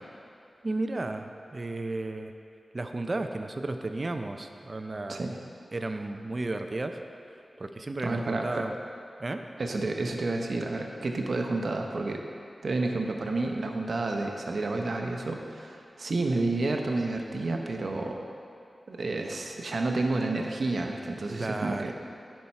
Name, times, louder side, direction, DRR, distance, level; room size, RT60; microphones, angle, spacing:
voice 1, 0.6-2.3 2.7-5.2 5.7-7.0 7.6-8.7 9.2-9.4 21.4-21.9, right 2 dB, 40° right, 6 dB, 0.5 m, -33 dB
voice 2, 8.0-8.7 9.6-12.2 12.6-18.2 18.9-21.9, right 2 dB, 65° right, 2 dB, 0.8 m, -30 dB
10.5 x 5.6 x 4.3 m, 2.6 s
wide cardioid pair, 100°, 0 cm